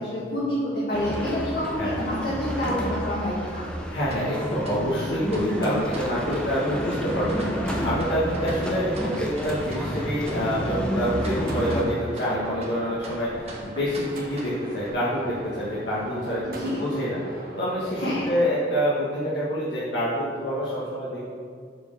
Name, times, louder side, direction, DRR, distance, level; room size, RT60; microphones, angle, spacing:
voice 1, 0.0-3.7 16.4-16.8 17.9-18.3, left 1 dB, 60° left, -8 dB, 1.7 m, -28 dB
sound 1, 0.9-11.8, equal, 5° left, 0.7 m, -30 dB
voice 2, 3.9-18.0 18.3-21.2, equal, 80° left, -9 dB, 1.4 m, -27 dB
sound 2, 4.1-14.9, right 1 dB, 35° right, 1.2 m, -43 dB
sound 3, 5.5-18.3, equal, 55° right, 1.1 m, -41 dB
7.2 x 4.3 x 6.6 m, 2.2 s
head